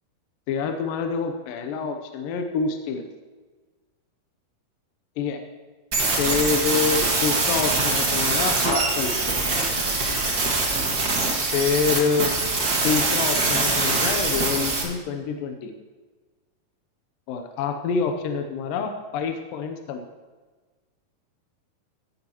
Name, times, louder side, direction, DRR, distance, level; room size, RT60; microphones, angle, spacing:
voice 1, 0.5-3.0 5.2-5.4 6.2-9.4 11.5-12.3 12.8-15.7 17.3-20.1, left 5 dB, 75° left, 5 dB, 2.2 m, -26 dB
sound 1, 5.9-14.8, right 3 dB, 65° right, 0.9 m, -23 dB
17.0 x 9.5 x 3.0 m, 1.3 s
omnidirectional pair, 4.6 m